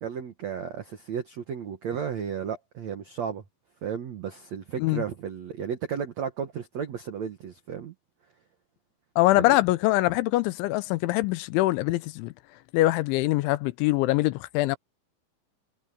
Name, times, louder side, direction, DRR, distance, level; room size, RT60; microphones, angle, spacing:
voice 1, 0.0-3.4 3.8-7.9 9.3-9.5, right 7 dB, 75° right, 1.6 m, -34 dB
voice 2, 9.2-12.3 12.7-14.8, left 18 dB, 85° left, 3.1 m, -23 dB
omnidirectional pair, 5.5 m